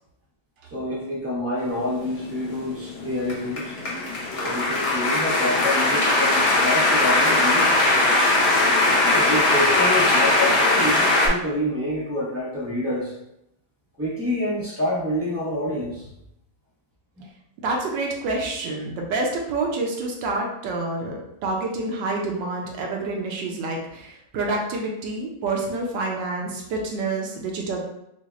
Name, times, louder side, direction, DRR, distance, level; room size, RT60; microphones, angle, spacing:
voice 1, 0.7-3.8 4.4-8.0 9.1-13.1 14.0-16.1 17.2-17.3, left 1 dB, 15° right, -7 dB, 0.5 m, -27 dB
sound 1, 2.0-11.3, left 2 dB, 55° left, 0.7 m, -20 dB
voice 2, 17.6-27.8, right 2 dB, 80° right, 0 dB, 1.3 m, -28 dB
5.8 x 2.0 x 2.4 m, 0.81 s
omnidirectional pair, 2.0 m